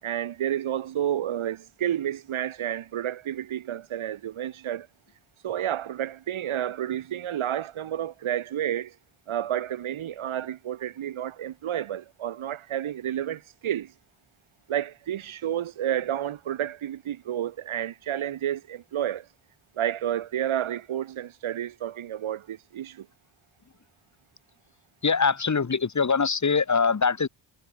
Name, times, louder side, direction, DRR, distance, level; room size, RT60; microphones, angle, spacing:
voice 1, 0.0-4.9 5.4-8.9 9.3-13.9 14.7-19.3 19.7-23.1, right 11 dB, 70° right, 4.9 m, -30 dB
voice 2, 25.0-27.3, left 5 dB, 35° left, 3.4 m, -23 dB
cardioid pair, 75°, 50 cm